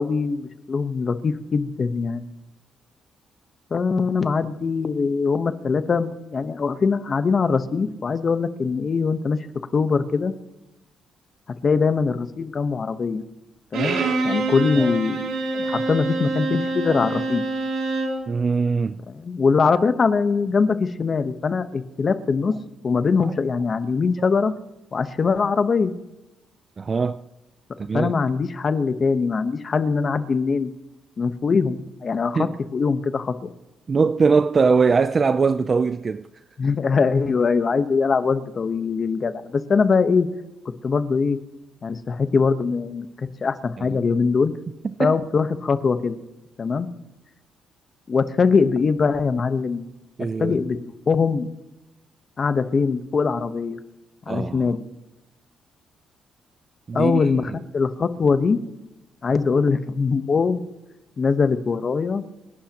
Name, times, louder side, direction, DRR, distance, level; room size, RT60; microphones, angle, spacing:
voice 1, 0.0-2.3 3.7-9.4 9.7-10.3 11.6-13.2 13.7-14.0 14.2-17.4 19.1-22.5 22.8-24.5 24.9-25.9 27.9-30.7 31.2-33.5 36.6-40.3 40.8-41.4 41.8-44.5 45.0-46.2 46.6-46.9 48.1-49.8 50.4-51.5 52.4-53.8 54.3-54.8 56.9-58.6 59.2-60.6 61.2-62.2, left 5 dB, 40° left, 11 dB, 1.0 m, -22 dB
Bowed string instrument, 13.7-18.2, right 3 dB, 85° right, 6.2 m, -26 dB
voice 2, 14.6-14.9 18.3-19.0 26.8-27.2 27.9-28.1 32.3-32.5 33.9-36.3 43.8-44.0 45.0-45.1 50.2-50.6 54.3-54.7 56.9-57.2, right 5 dB, 35° right, 12 dB, 0.4 m, -21 dB
29.5 x 11.5 x 3.0 m, 0.94 s
cardioid pair, 90°, 0 cm